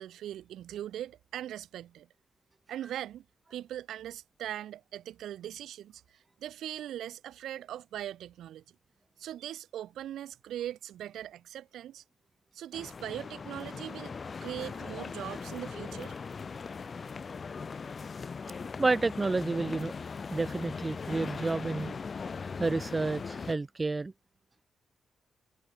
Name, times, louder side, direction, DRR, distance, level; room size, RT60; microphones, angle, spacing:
voice 1, 0.0-2.1 2.7-3.2 3.5-6.0 6.4-8.6 9.2-12.0 12.5-16.1, right 11 dB, 80° right, 3.3 m, -40 dB
sound 1, 12.7-23.5, left 5 dB, 40° left, 1.3 m, -40 dB
voice 2, 18.8-19.9 20.3-22.0 22.6-24.1, right 3 dB, 25° right, 1.4 m, -30 dB
cardioid pair, 80°, 0 cm